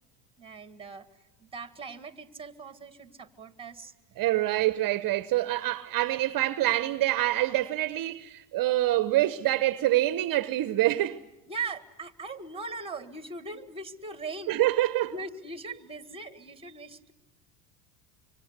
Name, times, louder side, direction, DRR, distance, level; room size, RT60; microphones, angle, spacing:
voice 1, 0.4-1.1 1.4-3.9 11.5-14.6 15.0-17.1, right 4 dB, 10° right, 1.8 m, -40 dB
voice 2, 4.2-11.2 14.5-15.1, right 15 dB, 45° right, 1.0 m, -26 dB
25.0 x 24.5 x 8.0 m
supercardioid pair, 90°, 48 cm